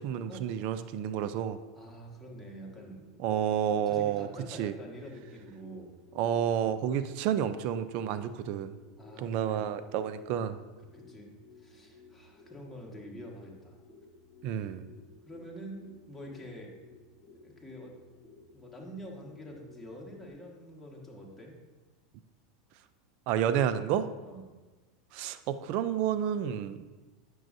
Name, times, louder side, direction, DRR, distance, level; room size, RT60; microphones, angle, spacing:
voice 1, 0.0-1.6 3.2-4.3 4.6-4.7 6.2-8.8 9.2-10.6 14.4-14.9 23.3-24.1 25.1-26.8, right 9 dB, 55° right, 12 dB, 0.4 m, -30 dB
voice 2, 1.7-3.0 3.8-5.9 9.0-9.6 10.9-11.3 11.6-13.8 14.5-14.7 15.2-16.7 17.4-17.9 18.5-21.6 24.3-24.5, equal, 5° left, -3 dB, 1.6 m, -46 dB
sound 1, 1.9-20.3, left 3 dB, 35° left, 1.4 m, -56 dB
8.9 x 6.2 x 2.6 m, 1.3 s
hypercardioid pair, 105°, 3 cm